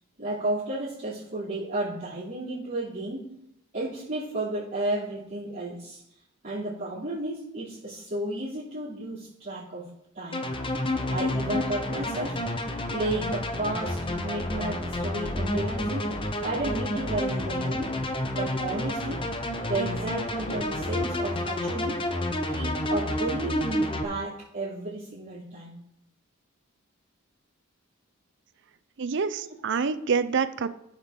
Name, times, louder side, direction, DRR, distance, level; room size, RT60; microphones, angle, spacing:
voice 1, 0.2-3.3 3.7-6.0 6.4-9.9 10.1-10.5 11.1-12.4 12.9-16.1 16.4-17.9 18.3-19.2 19.7-22.0 22.5-25.8, right 2 dB, 40° right, -12 dB, 2.8 m, -32 dB
sound 1, 10.3-24.0, left 1 dB, 25° left, 0.7 m, -29 dB
voice 2, 29.0-30.7, right 5 dB, 60° right, 13 dB, 0.5 m, -26 dB
13.5 x 6.4 x 3.7 m, 0.81 s
head